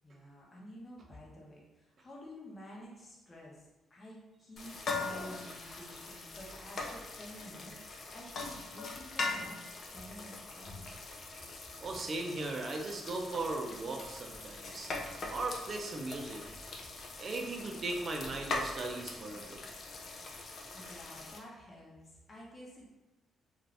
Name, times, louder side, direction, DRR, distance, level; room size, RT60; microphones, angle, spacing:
voice 1, 0.0-10.9 20.7-22.9, equal, 30° left, -4 dB, 0.9 m, -51 dB
sound 1, 4.6-21.4, left 3 dB, 50° left, 0.5 m, -42 dB
voice 2, 11.8-14.9 15.3-16.4 17.2-19.6, right 2 dB, 45° right, 2 dB, 0.5 m, -38 dB
2.6 x 2.5 x 3.3 m, 1.0 s
cardioid pair, 90°, 0 cm